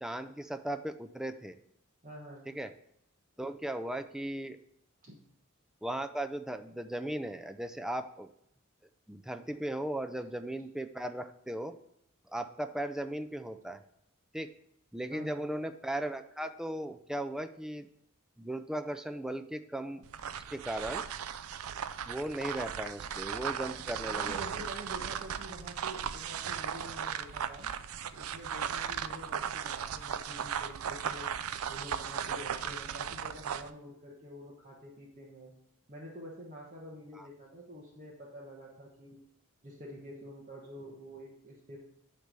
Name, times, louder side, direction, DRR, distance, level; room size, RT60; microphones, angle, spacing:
voice 1, 0.0-1.6 2.5-2.7 3.4-4.6 5.8-8.3 9.1-11.8 12.3-13.8 14.3-14.5 14.9-17.9 18.4-20.0 20.5-21.0 22.1-24.4 37.2-37.3, right 1 dB, ahead, 8 dB, 0.4 m, -37 dB
voice 2, 2.0-2.5 5.0-5.1 15.1-15.5 24.0-27.7 28.1-31.3 31.7-35.5 35.9-39.2 39.6-41.8, equal, 40° right, -3 dB, 1.2 m, -47 dB
sound 1, 20.0-33.7, right 8 dB, 75° right, 0.4 m, -37 dB
9.4 x 3.4 x 6.7 m, 0.74 s
head